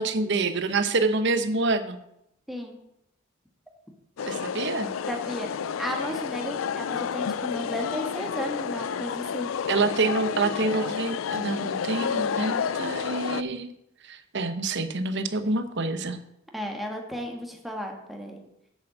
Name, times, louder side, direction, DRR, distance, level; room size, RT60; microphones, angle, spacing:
voice 1, 0.0-2.0 4.3-4.9 9.7-13.7 14.1-16.2, right 3 dB, 60° right, 10 dB, 0.9 m, -27 dB
sound 1, 4.2-13.4, left 7 dB, 80° left, 0.4 m, -30 dB
voice 2, 5.1-5.5 5.8-9.5 16.5-18.4, equal, ahead, 1 dB, 1.5 m, -34 dB
7.5 x 7.1 x 7.5 m, 0.80 s
head